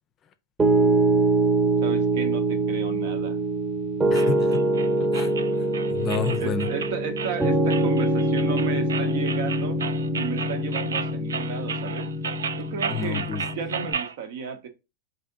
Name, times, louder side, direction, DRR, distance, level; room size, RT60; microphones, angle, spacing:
Piano, 0.6-13.9, right 2 dB, 20° right, 0.9 m, -24 dB
voice 1, 1.8-3.4 6.4-9.8 10.1-12.1 12.6-13.3 13.5-14.7, right 6 dB, 65° right, 0.8 m, -34 dB
voice 2, 4.1-4.7 5.0-5.3 5.9-6.7 12.9-13.5, left 5 dB, 35° left, 0.5 m, -29 dB
sound 1, 4.1-14.1, right 6 dB, 85° right, 0.3 m, -34 dB
3.4 x 2.7 x 3.6 m
hypercardioid pair, 100°, 0 cm